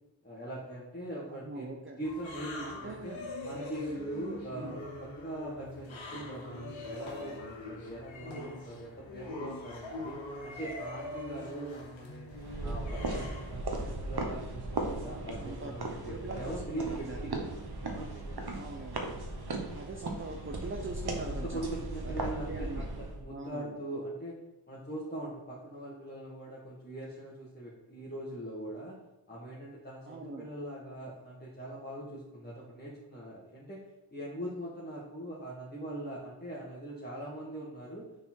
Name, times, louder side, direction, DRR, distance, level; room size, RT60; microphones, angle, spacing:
voice 1, 0.2-3.1 3.4-12.3 12.6-17.3 17.9-18.5 21.3-24.4 24.7-29.0 29.3-33.8 34.1-38.1, right 1 dB, 20° left, -6 dB, 1.6 m, -41 dB
voice 2, 1.3-2.0 2.6-3.2 4.5-4.8 15.1-15.7 16.0-17.5 18.5-19.1 19.7-21.6 22.0-22.9 23.3-23.8 30.1-30.5, right 2 dB, 25° right, 1 dB, 0.8 m, -42 dB
sound 1, 2.0-13.6, left 1 dB, 85° left, 1.0 m, -43 dB
sound 2, 12.3-23.2, right 2 dB, 55° right, 1.2 m, -37 dB
6.8 x 4.1 x 4.5 m, 0.95 s
cardioid pair, 50°, 45 cm